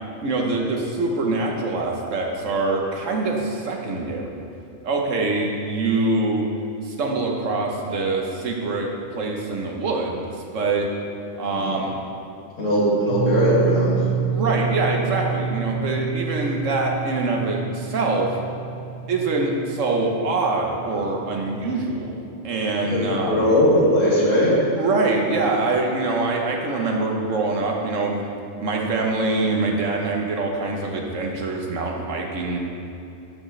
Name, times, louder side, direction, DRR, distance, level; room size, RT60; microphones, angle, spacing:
voice 1, 0.2-4.3 4.8-6.5 6.8-10.2 10.5-10.9 11.4-11.9 14.3-18.4 19.1-22.1 22.4-23.5 24.8-28.3 28.6-32.6, right 3 dB, 75° right, 1 dB, 1.3 m, -24 dB
voice 2, 11.4-11.7 12.6-14.0 22.9-24.5, equal, 80° left, -7 dB, 2.6 m, -19 dB
sound 1, 13.1-23.0, right 7 dB, 45° right, 0.6 m, -29 dB
11.0 x 6.2 x 3.2 m, 2.8 s
omnidirectional pair, 1.3 m